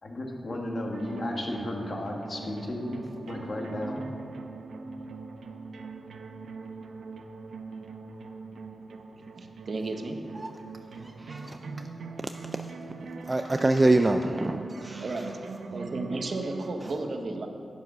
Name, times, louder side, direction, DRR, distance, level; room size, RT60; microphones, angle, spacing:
voice 1, 0.0-4.0, left 1 dB, 40° left, 0 dB, 1.6 m, -34 dB
sound 1, 0.9-16.8, right 4 dB, 85° right, 0.8 m, -41 dB
voice 2, 9.4-10.5 15.0-15.4 15.7-17.5, right 2 dB, 50° right, 4 dB, 1.0 m, -34 dB
voice 3, 13.3-15.0, right 2 dB, 20° right, 6 dB, 0.4 m, -24 dB
11.0 x 10.5 x 6.1 m, 2.6 s
wide cardioid pair, 160°, 0 cm